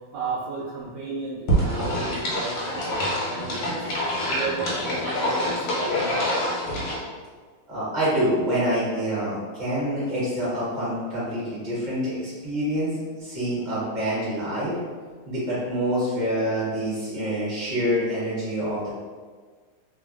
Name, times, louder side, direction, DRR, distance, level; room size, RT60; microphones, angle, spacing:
voice 1, 0.1-3.9 4.3-6.5, right 3 dB, 75° right, -8 dB, 1.0 m, -34 dB
sound 1, 1.5-7.0, equal, 70° left, 1.5 m, -26 dB
voice 2, 7.7-14.8 15.2-18.9, equal, 30° right, -8 dB, 0.9 m, -26 dB
3.3 x 2.3 x 2.4 m, 1.5 s
omnidirectional pair, 2.3 m